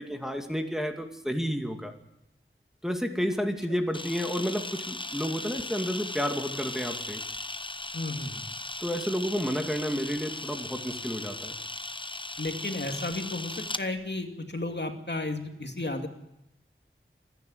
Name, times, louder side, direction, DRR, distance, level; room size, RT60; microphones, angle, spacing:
voice 1, 0.0-1.9 2.8-7.2 8.8-11.6, equal, ahead, 4 dB, 2.3 m, -31 dB
Camera, 3.9-13.8, left 2 dB, 25° left, 0.9 m, -37 dB
voice 2, 7.9-8.4 12.4-16.1, left 2 dB, 55° left, 4 dB, 2.4 m, -33 dB
27.0 x 10.5 x 9.7 m, 0.87 s
wide cardioid pair, 55°, 21 cm